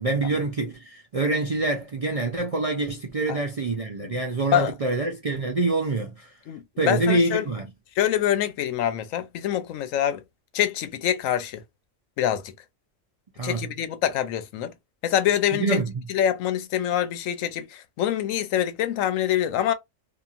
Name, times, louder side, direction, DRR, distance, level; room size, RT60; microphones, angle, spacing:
voice 1, 0.0-6.3 6.8-7.7 13.4-13.7 15.5-16.0, right 2 dB, 65° right, 0.3 m, -26 dB
voice 2, 6.5-7.5 8.0-10.2 10.5-11.6 12.2-12.5 13.4-14.7 15.0-15.8 16.1-19.7, left 11 dB, 90° left, 1.0 m, -25 dB
2.8 x 2.5 x 2.4 m
omnidirectional pair, 1.3 m